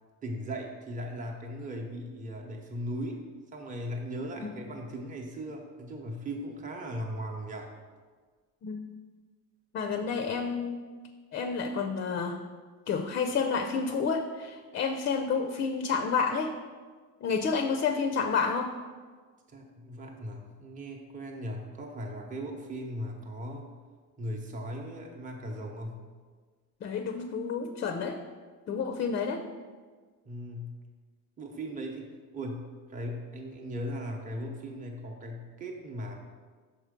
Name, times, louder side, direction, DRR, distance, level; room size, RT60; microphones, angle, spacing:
voice 1, 0.2-3.3 3.5-7.7 19.5-23.7 24.2-26.1 30.3-30.8 31.4-36.2, equal, 20° right, 1 dB, 0.8 m, -38 dB
voice 2, 9.7-10.9 11.3-12.4 12.9-16.6 17.2-18.7 26.8-28.2 28.7-29.5, left 5 dB, 35° left, 6 dB, 0.4 m, -30 dB
6.4 x 4.3 x 5.1 m, 1.5 s
cardioid pair, 130°, 35 cm